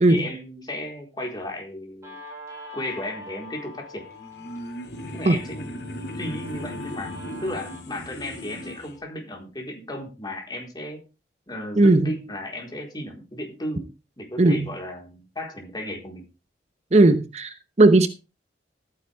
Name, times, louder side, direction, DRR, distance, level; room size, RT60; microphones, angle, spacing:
voice 1, 0.1-2.2 2.7-4.1 5.1-5.9 6.1-7.1 7.4-11.0 11.5-13.9 14.2-16.2, left 1 dB, 25° left, 4.2 m, -34 dB
Guitar, 2.0-9.0, left 2 dB, 15° right, 7.6 m, -43 dB
sound 1, 4.0-8.9, equal, 65° left, 2.7 m, -37 dB
voice 2, 11.8-12.1 14.4-14.7 16.9-18.1, right 2 dB, 40° right, 0.9 m, -17 dB
14.5 x 9.6 x 3.5 m
head